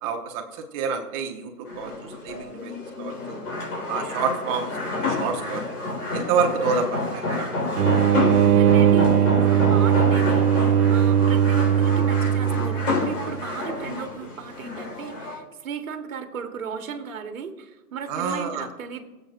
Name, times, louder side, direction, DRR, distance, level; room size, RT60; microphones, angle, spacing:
voice 1, 0.0-3.4 3.9-5.6 6.1-7.5 18.1-18.7, right 5 dB, 20° right, 4 dB, 1.0 m, -28 dB
sound 1, 1.7-15.4, left 3 dB, 75° left, 4.1 m, -29 dB
sound 2, 7.8-13.1, right 9 dB, 80° right, 0.7 m, -19 dB
voice 2, 8.6-10.5 10.9-19.0, right 7 dB, 60° right, 6 dB, 1.5 m, -35 dB
21.5 x 8.0 x 2.5 m, 1.2 s
hypercardioid pair, 145°, 45 cm